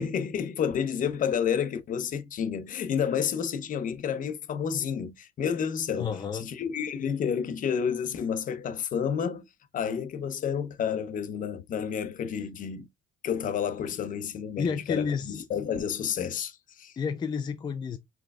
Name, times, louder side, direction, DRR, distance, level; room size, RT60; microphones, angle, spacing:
voice 1, 0.0-9.4 9.7-12.9 13.2-16.9, left 7 dB, 50° left, 0.8 m, -30 dB
voice 2, 6.0-6.4 14.6-15.4 17.0-18.0, left 6 dB, 25° left, 0.4 m, -30 dB
4.7 x 3.8 x 2.3 m
cardioid pair, 110°, 17 cm